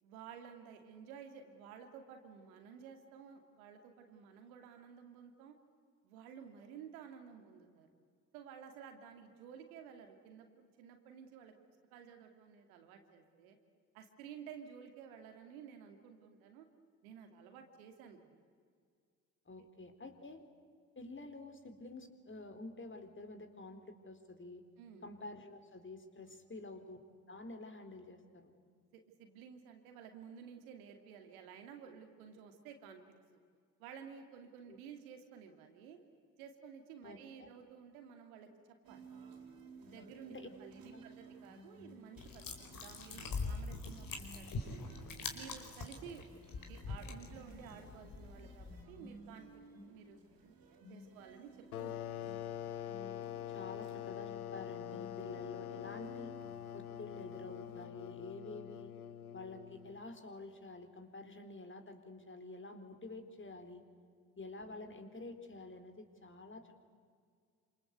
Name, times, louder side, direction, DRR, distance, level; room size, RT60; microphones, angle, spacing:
voice 1, 0.0-5.5 6.0-7.9 8.3-11.5 11.9-13.6 13.9-16.7 17.0-18.3 19.6-19.7 24.8-25.1 26.2-26.3 28.9-33.0 33.8-36.0 36.4-38.5 38.9-39.0 39.9-44.8 45.3-46.4 46.7-50.5 50.9-51.5 51.8-52.5, right 7 dB, 75° right, 5 dB, 2.6 m, -53 dB
voice 2, 19.5-20.4 21.0-24.6 25.0-27.0 27.3-28.5 34.7-34.8 37.0-37.5 40.3-40.5 40.9-41.0 53.5-56.4 56.7-58.9 59.3-63.8 64.4-66.8, left 2 dB, 25° left, 7 dB, 3.9 m, -49 dB
sound 1, 38.8-57.9, right 2 dB, 55° right, 4.2 m, -57 dB
sound 2, 42.2-48.8, left 3 dB, 50° left, 4.7 m, -43 dB
sound 3, 51.7-60.1, left 11 dB, 85° left, 0.8 m, -45 dB
27.0 x 27.0 x 8.2 m, 2.1 s
figure-of-eight pair, 45°, 43 cm